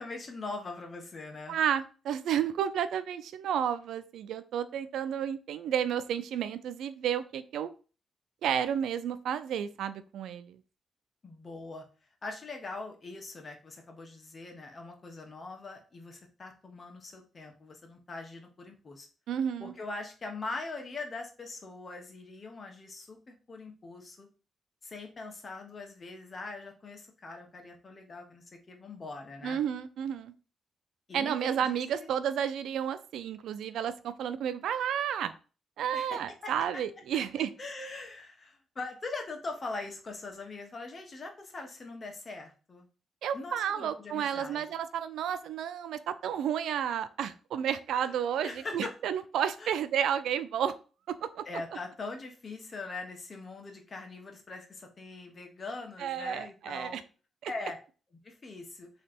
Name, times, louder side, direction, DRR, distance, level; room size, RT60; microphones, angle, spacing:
voice 1, 0.0-1.6 11.2-11.8 12.2-19.1 19.6-24.3 24.8-29.6 31.1-32.1 35.9-36.5 37.1-37.2 37.6-42.9 43.3-44.7 48.0-48.1 48.4-48.9 49.6-49.7 51.4-57.0 57.5-57.8 58.2-58.9, left 3 dB, 40° left, 3 dB, 1.3 m, -42 dB
voice 2, 1.5-7.7 8.4-10.6 19.3-19.7 29.4-30.3 31.1-35.3 35.8-37.5 43.2-50.7 51.1-51.4 56.0-57.0 57.4-57.5, right 9 dB, 85° right, 12 dB, 0.4 m, -31 dB
3.7 x 3.2 x 4.3 m, 0.36 s
cardioid pair, 80°, 0 cm